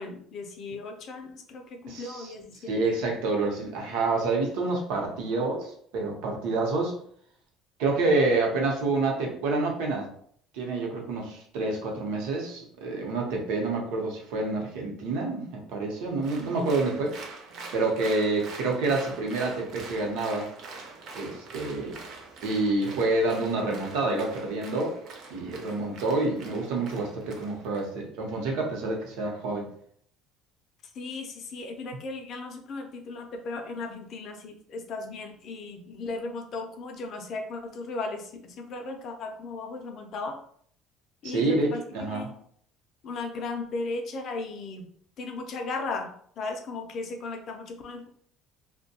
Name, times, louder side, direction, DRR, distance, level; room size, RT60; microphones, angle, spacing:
voice 1, 0.0-2.9 30.9-40.4 41.2-41.8 42.1-42.3 43.0-44.9 45.2-48.1, left 3 dB, 40° left, 4 dB, 0.4 m, -36 dB
voice 2, 1.9-2.3 2.7-7.0 7.8-10.1 10.5-17.2 17.7-20.5 21.1-22.0 22.4-25.0 25.3-29.7 41.2-42.3, right 3 dB, 80° right, 0 dB, 0.7 m, -28 dB
Applause, 16.2-27.8, right 3 dB, 45° right, 0.5 m, -44 dB
2.6 x 2.1 x 2.7 m, 0.62 s
cardioid pair, 175°, 0 cm